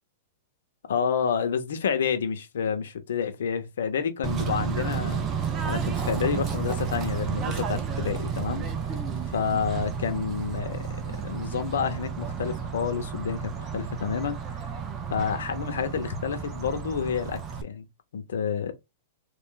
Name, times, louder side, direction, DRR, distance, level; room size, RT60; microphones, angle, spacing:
voice 1, 0.9-5.2 5.7-8.6 9.3-10.9 11.1-14.6 15.1-17.9 18.1-18.7, left 7 dB, 85° left, 0.9 m, -29 dB
Bird / Train, 4.2-17.6, right 6 dB, 20° right, 0.5 m, -32 dB
3.3 x 2.5 x 3.8 m
supercardioid pair, 170°, 0 cm